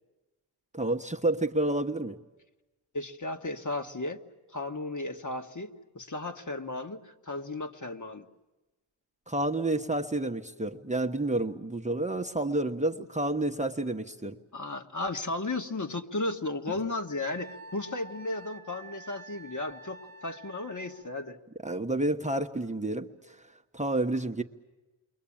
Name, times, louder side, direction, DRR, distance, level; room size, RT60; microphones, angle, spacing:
voice 1, 0.7-2.2 9.3-14.4 21.6-23.1 23.7-24.4, right 2 dB, 15° right, 3 dB, 1.2 m, -29 dB
voice 2, 2.9-4.2 4.5-8.3 14.5-21.4, left 2 dB, 35° left, 5 dB, 1.8 m, -35 dB
Wind instrument woodwind instrument, 17.3-21.1, right 2 dB, 45° right, 1.4 m, -48 dB
28.5 x 23.5 x 8.8 m, 1.1 s
cardioid pair, 80°, 49 cm